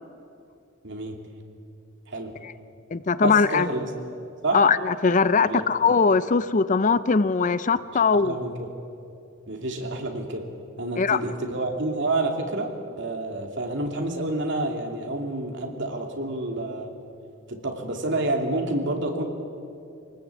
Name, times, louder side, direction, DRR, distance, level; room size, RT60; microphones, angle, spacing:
voice 1, 0.8-1.2 2.1-2.3 3.2-3.9 4.4-4.6 5.4-5.6 7.9-8.7 9.5-10.4 10.8-12.7 13.0-16.9 17.5-19.2, right 2 dB, 60° right, 3 dB, 2.8 m, -28 dB
voice 2, 2.9-3.7 4.5-8.4 11.0-11.2, left 5 dB, 40° left, 15 dB, 0.5 m, -21 dB
24.5 x 18.5 x 8.4 m, 2.6 s
head